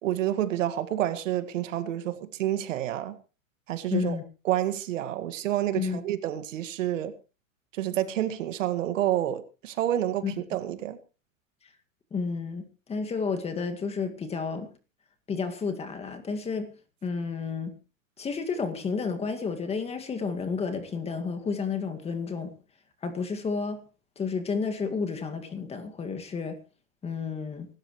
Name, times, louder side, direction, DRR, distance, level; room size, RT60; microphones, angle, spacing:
voice 1, 0.0-3.2 3.7-4.2 4.5-7.1 7.7-11.0, right 12 dB, 70° right, 1.9 m, -29 dB
voice 2, 3.9-4.2 5.8-6.0 10.2-10.4 12.1-14.7 15.3-16.7 17.0-17.7 18.2-22.5 23.0-23.8 24.2-26.6 27.0-27.7, left 5 dB, 15° left, 2.0 m, -31 dB
24.5 x 13.0 x 3.1 m
hypercardioid pair, 140°, 40 cm